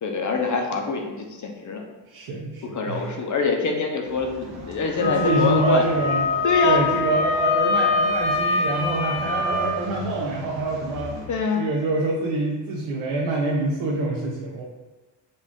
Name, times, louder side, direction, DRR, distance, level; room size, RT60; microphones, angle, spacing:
voice 1, 0.0-1.8 2.7-5.8 6.4-6.9 9.2-9.6 11.3-11.7, left 4 dB, 40° left, 2 dB, 0.6 m, -25 dB
voice 2, 2.1-3.2 5.0-6.2 6.6-11.2 11.5-14.6, right 2 dB, 90° right, -3 dB, 0.8 m, -26 dB
sound 1, 4.0-11.3, right 1 dB, 60° right, 1.1 m, -41 dB
Wind instrument woodwind instrument, 5.0-9.8, left 3 dB, 80° left, 0.7 m, -24 dB
5.3 x 2.4 x 3.6 m, 1.2 s
cardioid pair, 115°, 47 cm